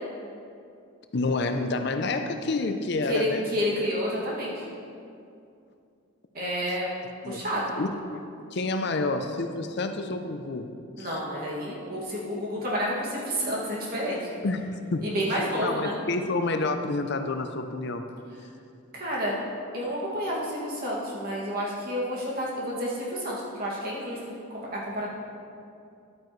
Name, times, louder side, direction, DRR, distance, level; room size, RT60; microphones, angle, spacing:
voice 1, 1.1-3.5 7.2-7.4 7.8-8.2 8.5-10.7 11.0-11.1 14.4-14.6 14.9-15.0 15.6-18.0, left 3 dB, 55° left, 7 dB, 0.5 m, -28 dB
voice 2, 3.1-4.6 6.3-6.9 7.3-7.7 11.0-14.3 15.0-16.0 18.9-19.4 19.7-25.1, equal, 45° right, -5 dB, 2.1 m, -30 dB
11.5 x 9.1 x 3.2 m, 2.5 s
head